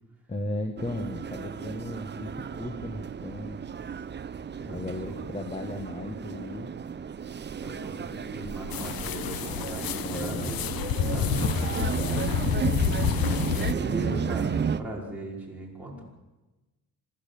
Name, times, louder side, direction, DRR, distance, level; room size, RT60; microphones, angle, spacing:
voice 1, 0.3-3.6 4.6-6.8 10.0-10.5 11.8-12.9, left 2 dB, 20° left, 6 dB, 1.5 m, -36 dB
sound 1, 0.8-14.8, right 7 dB, 30° right, 0.7 m, -33 dB
voice 2, 7.6-11.5 13.4-16.0, right 1 dB, 5° right, -4 dB, 5.5 m, -38 dB
sound 2, 8.7-13.7, left 12 dB, 85° left, 0.8 m, -29 dB
25.5 x 13.0 x 8.5 m, 1.1 s
cardioid pair, 150°, 35 cm